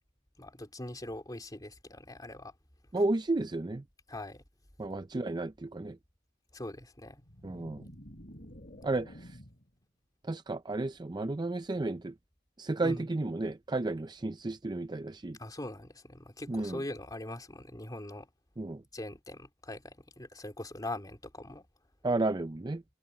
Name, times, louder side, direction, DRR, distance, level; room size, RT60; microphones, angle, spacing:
voice 1, 0.4-2.5 4.1-4.4 6.5-7.2 12.8-13.1 15.4-18.3 18.9-21.7, left 1 dB, 20° left, 3.0 m, -42 dB
voice 2, 2.9-3.8 4.8-6.0 7.4-7.8 8.8-9.1 10.3-12.1 12.6-15.4 16.5-16.8 18.6-18.8 22.0-22.8, right 2 dB, 25° right, 0.5 m, -32 dB
sound 1, 7.2-9.7, equal, 45° left, 3.0 m, -50 dB
head